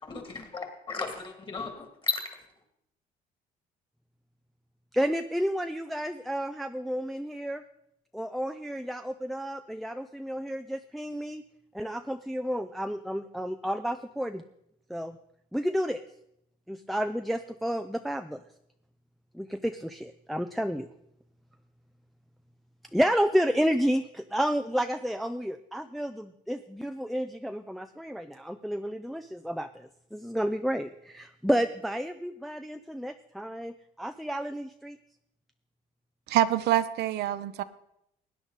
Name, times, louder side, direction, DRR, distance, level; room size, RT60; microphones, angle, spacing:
voice 1, 0.0-2.2, left 3 dB, 30° left, 2.4 m, -34 dB
voice 2, 4.9-7.6 8.1-11.4 11.7-14.4 14.9-15.2 15.5-16.0 16.7-18.4 19.3-20.9 22.9-35.0, equal, ahead, 0.4 m, -31 dB
voice 3, 36.3-37.6, right 13 dB, 75° right, 0.7 m, -25 dB
17.0 x 9.9 x 4.0 m
cardioid pair, 110°, 17 cm